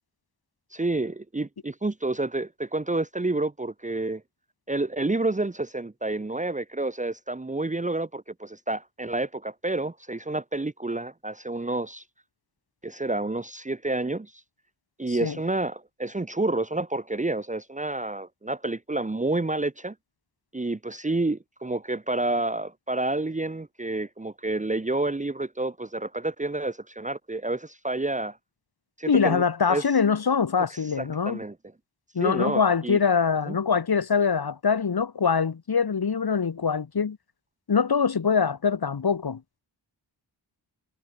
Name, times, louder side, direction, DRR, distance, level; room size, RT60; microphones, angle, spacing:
voice 1, 0.7-4.2 4.7-12.0 12.8-14.3 15.0-19.9 20.5-28.4 29.0-29.4 29.7-29.8 31.0-31.5 32.2-33.0 33.5-33.6, right 2 dB, 15° right, 1.4 m, -29 dB
voice 2, 15.1-15.4 29.1-31.4 32.1-37.2 37.7-39.4, left 6 dB, 60° left, 6.6 m, -23 dB
wide cardioid pair, 120°, 43 cm